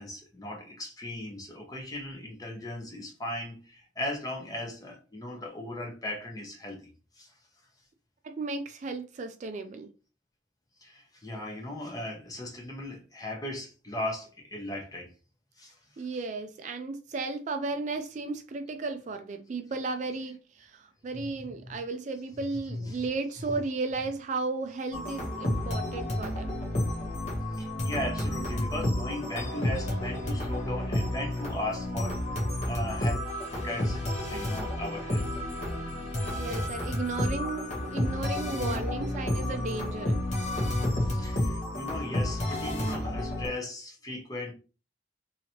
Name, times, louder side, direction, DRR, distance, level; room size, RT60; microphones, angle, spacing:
voice 1, 0.0-6.9 7.2-7.3 10.8-15.1 15.6-15.7 21.6-21.8 22.7-23.0 27.5-32.2 32.7-33.2 33.5-34.0 34.3-35.2 41.0-44.5, left 1 dB, 20° left, 0.8 m, -37 dB
voice 2, 8.2-9.9 16.0-26.5 36.4-40.2, right 3 dB, 40° right, 0.3 m, -34 dB
sound 1, 24.9-43.5, left 1 dB, 40° left, 1.0 m, -31 dB
2.9 x 2.7 x 2.8 m
head